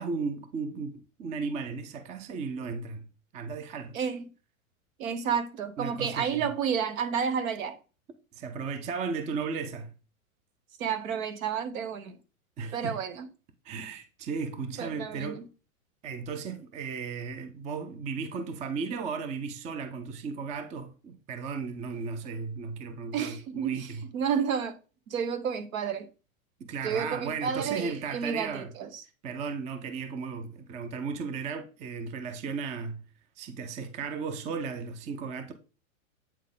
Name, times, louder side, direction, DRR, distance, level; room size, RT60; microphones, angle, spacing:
voice 1, 0.0-3.0 3.3-4.0 5.8-6.5 8.3-9.9 12.6-13.0 13.6-15.5 16.0-24.1 26.6-28.7 29.2-33.0 33.4-35.5, right 5 dB, 15° right, 0.5 m, -35 dB
voice 2, 5.0-7.8 10.8-12.2 12.7-13.3 14.8-15.4 23.1-24.8 25.1-26.1 26.8-29.0, right 7 dB, 70° right, 1.3 m, -31 dB
8.4 x 3.7 x 3.7 m
hypercardioid pair, 130°, 42 cm